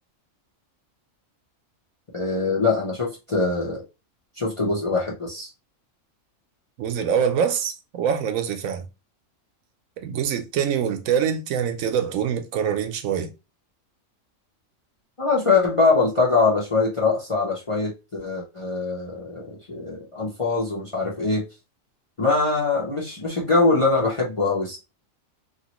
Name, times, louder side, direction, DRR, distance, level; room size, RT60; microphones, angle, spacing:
voice 1, 2.1-3.8 4.4-5.5 15.2-21.4 22.2-24.8, left 3 dB, 35° left, 0.6 m, -23 dB
voice 2, 6.8-8.8 10.0-13.3, right 8 dB, 85° right, 1.0 m, -24 dB
3.0 x 2.4 x 2.9 m
omnidirectional pair, 1.4 m